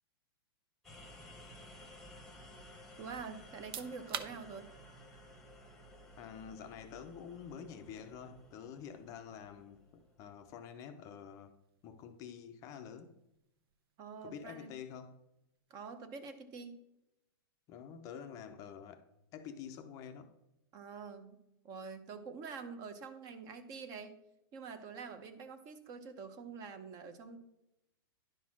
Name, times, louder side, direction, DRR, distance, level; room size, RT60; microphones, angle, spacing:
sound 1, 0.8-10.6, equal, 5° left, 1.0 m, -56 dB
voice 1, 3.0-4.7 14.0-14.7 15.7-16.8 20.7-21.4 21.6-24.1 24.5-27.4, right 5 dB, 25° right, 11 dB, 0.7 m, -46 dB
sound 2, 3.5-16.1, right 8 dB, 70° right, 0.7 m, -53 dB
voice 2, 6.2-11.5 11.8-13.1 14.2-15.2 17.7-19.1 19.3-20.3, left 7 dB, 25° left, 7 dB, 0.5 m, -48 dB
10.5 x 4.1 x 6.0 m, 0.88 s
hypercardioid pair, 155°, 13 cm